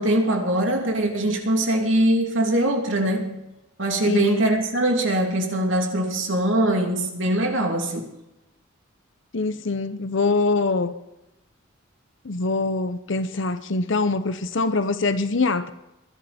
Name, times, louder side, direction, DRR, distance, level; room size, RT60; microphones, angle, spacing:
voice 1, 0.0-3.5 3.8-8.1, right 1 dB, 65° right, 2.8 m, -22 dB
voice 2, 4.0-4.4 9.3-10.9 12.2-15.7, left 3 dB, 60° left, 0.8 m, -24 dB
22.0 x 11.0 x 4.3 m
head